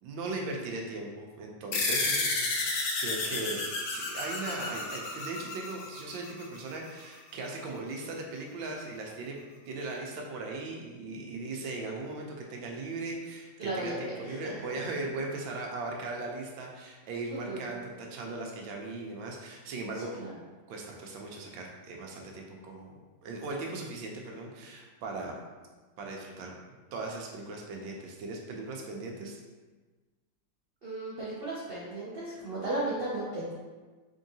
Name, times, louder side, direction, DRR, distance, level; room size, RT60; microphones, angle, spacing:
voice 1, 0.0-9.4 9.7-20.1 20.7-22.9 23.2-25.3 26.0-26.5 26.9-29.4, right 2 dB, 90° right, 0 dB, 1.4 m, -38 dB
sound 1, 1.7-6.6, left 3 dB, 70° left, 1.2 m, -31 dB
voice 2, 13.6-14.4 17.3-17.8 19.9-20.3 30.8-33.5, right 2 dB, 60° right, -8 dB, 0.6 m, -35 dB
3.6 x 3.6 x 2.7 m, 1.3 s
omnidirectional pair, 2.0 m